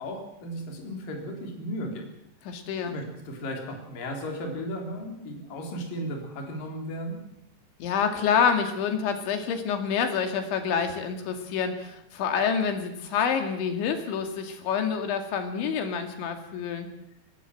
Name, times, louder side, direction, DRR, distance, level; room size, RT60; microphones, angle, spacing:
voice 1, 0.0-2.1 2.8-7.2, equal, 50° left, 2 dB, 5.3 m, -35 dB
voice 2, 2.5-3.0 7.8-16.9, left 7 dB, 85° left, 6 dB, 4.7 m, -27 dB
23.0 x 18.5 x 7.8 m, 0.82 s
omnidirectional pair, 5.2 m